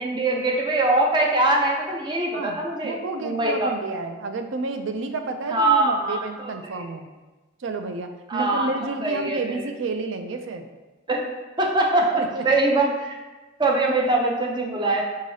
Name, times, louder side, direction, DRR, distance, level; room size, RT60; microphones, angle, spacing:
voice 1, 0.0-3.0 3.2-3.7 5.5-6.2 6.7-6.8 8.3-8.7 9.0-9.7 11.1-11.2 11.6-13.2 13.6-15.0, right 2 dB, 25° right, 0 dB, 0.6 m, -22 dB
voice 2, 2.3-7.1 7.6-10.7 12.1-12.4, right 3 dB, 65° right, 6 dB, 0.4 m, -30 dB
4.7 x 3.7 x 2.7 m, 1.2 s
head